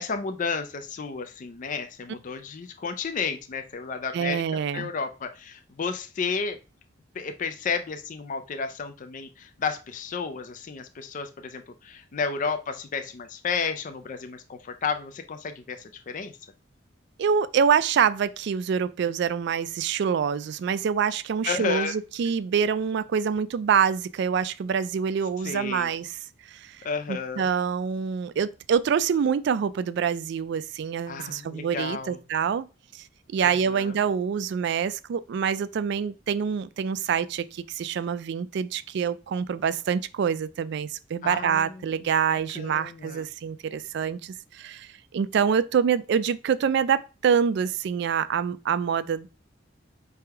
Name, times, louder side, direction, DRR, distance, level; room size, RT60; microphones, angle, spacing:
voice 1, 0.0-6.6 7.1-16.3 21.4-22.0 25.4-25.9 26.8-27.5 31.1-32.2 33.4-33.9 41.2-41.8 42.3-43.2, left 5 dB, 40° left, 0.4 m, -32 dB
voice 2, 4.1-4.9 17.2-26.2 26.5-26.8 27.1-32.7 32.9-33.0 33.3-49.3, right 7 dB, 60° right, 0.3 m, -26 dB
3.5 x 3.3 x 4.5 m
head